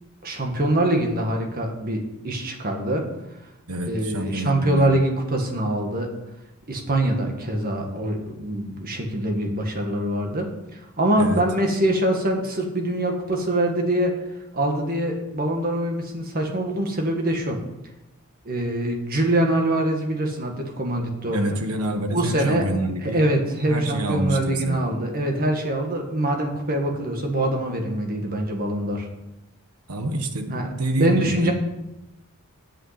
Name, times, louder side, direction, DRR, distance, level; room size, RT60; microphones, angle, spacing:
voice 1, 0.2-3.0 3.9-6.1 6.7-14.1 14.5-17.6 18.5-21.6 22.1-22.7 23.0-29.1 30.5-31.5, right 1 dB, 40° right, 2 dB, 2.0 m, -24 dB
voice 2, 3.7-4.9 11.2-11.4 21.3-23.2 23.7-24.8 29.9-31.5, right 1 dB, 80° right, 6 dB, 1.4 m, -27 dB
8.5 x 7.5 x 8.3 m, 0.93 s
head